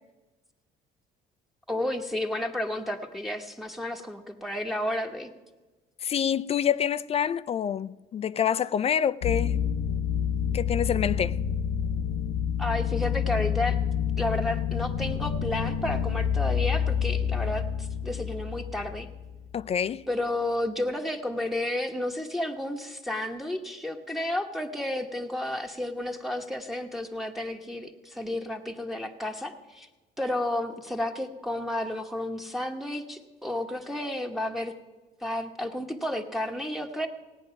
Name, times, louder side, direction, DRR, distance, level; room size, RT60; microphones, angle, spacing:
voice 1, 1.7-5.3 12.6-13.8 14.2-19.1 20.1-29.9 30.2-34.8 35.2-37.1, left 1 dB, ahead, 1.0 m, -32 dB
voice 2, 6.0-9.6 10.5-11.4 19.5-20.0, left 8 dB, 35° left, 0.4 m, -27 dB
sound 1, 9.2-19.6, left 8 dB, 80° left, 0.7 m, -28 dB
17.5 x 9.1 x 5.7 m
cardioid pair, 110°, 17 cm